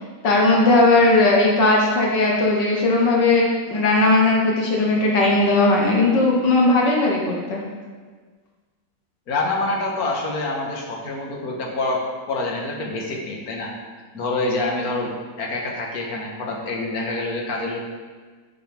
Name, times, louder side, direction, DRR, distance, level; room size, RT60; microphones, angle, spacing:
voice 1, 0.2-7.6, left 2 dB, 75° left, -2 dB, 2.0 m, -17 dB
voice 2, 9.3-12.0 12.3-13.7 14.1-15.1 15.4-17.8, left 2 dB, 55° left, -1 dB, 2.0 m, -26 dB
10.5 x 10.0 x 3.6 m, 1.4 s
omnidirectional pair, 1.9 m